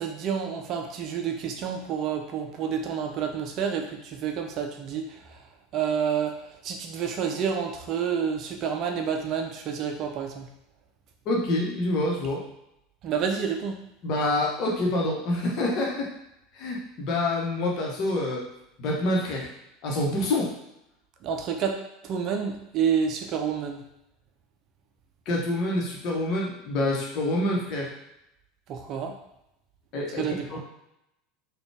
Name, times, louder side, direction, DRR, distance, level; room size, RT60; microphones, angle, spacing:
voice 1, 0.0-5.0 5.7-10.5 13.0-13.8 21.2-23.8 28.7-29.1 30.2-30.6, right 7 dB, 40° right, 3 dB, 0.5 m, -29 dB
voice 2, 11.3-12.4 14.0-16.1 16.6-18.4 18.8-19.5 19.8-20.5 25.3-27.9 29.9-30.6, left 1 dB, 45° left, -2 dB, 1.0 m, -27 dB
4.0 x 2.3 x 3.3 m, 0.84 s
figure-of-eight pair, 75°, 0 cm